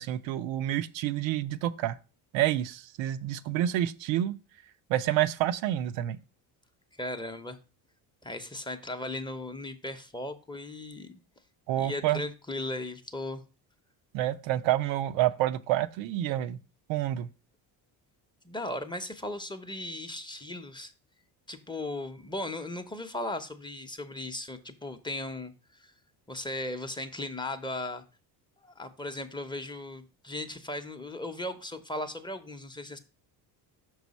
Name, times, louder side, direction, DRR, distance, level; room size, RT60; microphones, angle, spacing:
voice 1, 0.0-2.0 2.3-4.4 4.9-6.2 11.7-12.2 14.1-16.6 16.9-17.3, right 13 dB, 80° right, 0.6 m, -28 dB
voice 2, 6.9-7.6 8.2-11.1 11.8-13.4 18.4-20.9 21.5-25.9 26.3-28.0 28.6-33.0, left 1 dB, 10° left, 0.7 m, -37 dB
6.0 x 4.7 x 4.1 m
supercardioid pair, 90°, 44 cm